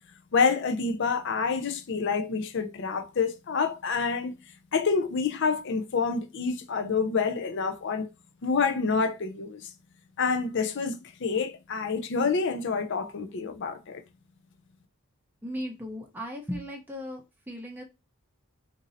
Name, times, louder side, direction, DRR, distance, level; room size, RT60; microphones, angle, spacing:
voice 1, 0.3-4.3 4.7-8.1 8.4-9.7 10.2-14.0, left 5 dB, 55° left, 0.5 m, -27 dB
voice 2, 15.4-17.8, equal, 10° right, 0.7 m, -37 dB
2.6 x 2.6 x 4.0 m
head